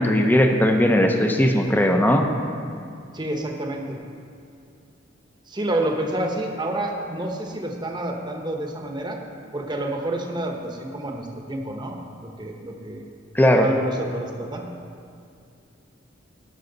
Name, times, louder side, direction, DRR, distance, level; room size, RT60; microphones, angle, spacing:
voice 1, 0.0-2.3 13.3-13.6, left 1 dB, 10° left, 4 dB, 0.7 m, -18 dB
voice 2, 3.1-4.0 5.5-9.2 9.5-13.1 13.5-14.7, right 1 dB, 20° right, 2 dB, 1.0 m, -28 dB
18.0 x 6.3 x 4.0 m, 2.4 s
head